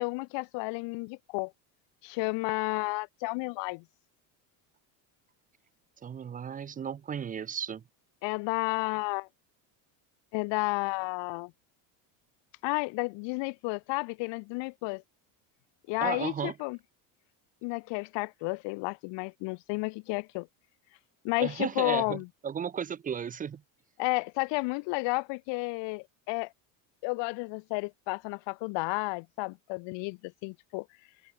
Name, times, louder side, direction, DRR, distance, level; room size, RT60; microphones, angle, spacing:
voice 1, 0.0-1.5 2.0-3.8 8.2-9.3 10.3-11.5 12.6-15.0 15.9-16.8 17.6-20.5 21.2-22.3 24.0-26.5 27.0-30.8, left 27 dB, 65° left, 1.0 m, -32 dB
voice 2, 6.0-7.8 16.0-16.5 21.4-23.6, right 7 dB, 20° right, 0.5 m, -34 dB
cardioid pair, 125°, 46 cm